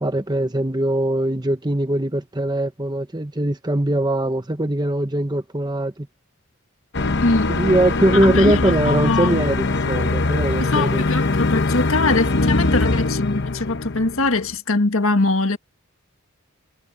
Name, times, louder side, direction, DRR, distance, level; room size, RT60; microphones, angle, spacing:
voice 1, 0.0-6.1 7.5-11.0, right 1 dB, 20° right, 1.1 m, -21 dB
sound 1, 6.9-14.5, left 3 dB, 50° left, 0.9 m, -22 dB
voice 2, 8.2-9.4 10.6-15.6, left 2 dB, 65° left, 1.7 m, -22 dB
head